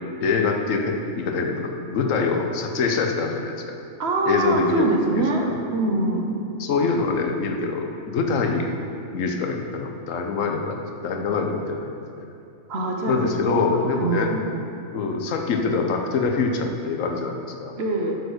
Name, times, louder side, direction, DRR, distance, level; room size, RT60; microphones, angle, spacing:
voice 1, 0.2-3.8 4.3-5.6 6.6-8.7 9.1-12.3 13.1-14.3 14.9-17.7, left 4 dB, 80° left, 3 dB, 1.2 m, -25 dB
voice 2, 4.0-5.4 5.7-6.3 12.7-13.3 13.6-14.4 17.8-18.2, right 2 dB, 55° right, 1 dB, 1.1 m, -24 dB
8.0 x 4.8 x 6.4 m, 2.6 s
omnidirectional pair, 1.3 m